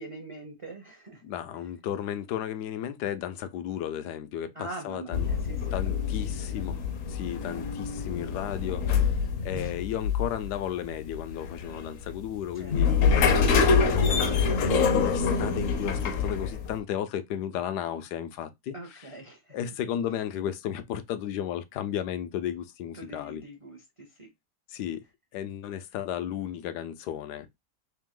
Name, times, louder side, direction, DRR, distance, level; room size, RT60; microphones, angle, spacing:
voice 1, 0.0-1.2 4.5-6.7 7.4-7.5 12.5-13.0 18.7-19.6 22.9-24.3, right 2 dB, 40° right, 0.4 m, -44 dB
voice 2, 1.2-5.3 5.7-6.8 7.1-12.9 13.4-19.1 19.5-23.4 24.7-25.0 25.3-27.5, left 10 dB, 80° left, 1.2 m, -34 dB
sound 1, 5.1-16.8, left 5 dB, 65° left, 0.9 m, -26 dB
3.5 x 2.8 x 3.6 m
omnidirectional pair, 1.7 m